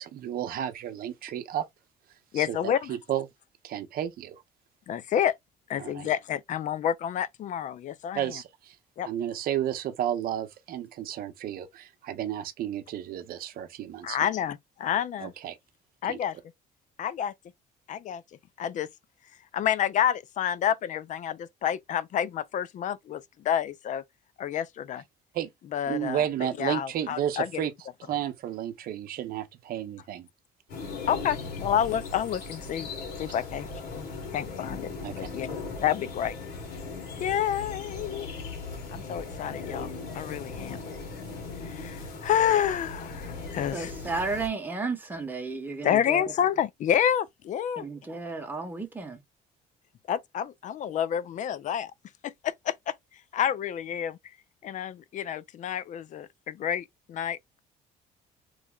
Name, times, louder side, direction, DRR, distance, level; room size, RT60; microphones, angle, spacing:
voice 1, 0.0-1.7 2.3-3.3 3.6-4.4 5.8-6.1 8.1-8.8 9.0-14.2 15.2-15.6 16.1-16.2 25.3-25.5 25.9-27.7 28.0-30.3 35.0-35.3, right 10 dB, 60° right, 0.7 m, -32 dB
voice 2, 2.3-2.9 4.9-5.3 5.7-8.2 9.0-9.1 14.0-15.3 16.0-16.4 17.0-17.3 17.9-18.2 18.6-18.9 19.5-24.0 24.4-25.0 25.7-26.3 26.6-27.6 31.1-32.9 33.2-33.7 34.3-34.9 35.2-35.5 35.8-36.3 37.2-38.3 38.9-40.8 41.6-43.9 45.8-47.9 50.1-51.9 52.2-52.9 53.3-54.2 54.6-57.4, left 9 dB, 50° left, 0.4 m, -29 dB
sound 1, 30.7-44.5, left 4 dB, 70° left, 1.6 m, -38 dB
voice 3, 43.7-46.2 47.8-49.2, right 4 dB, 10° right, 1.0 m, -33 dB
3.1 x 2.1 x 3.6 m
cardioid pair, 110°, 17 cm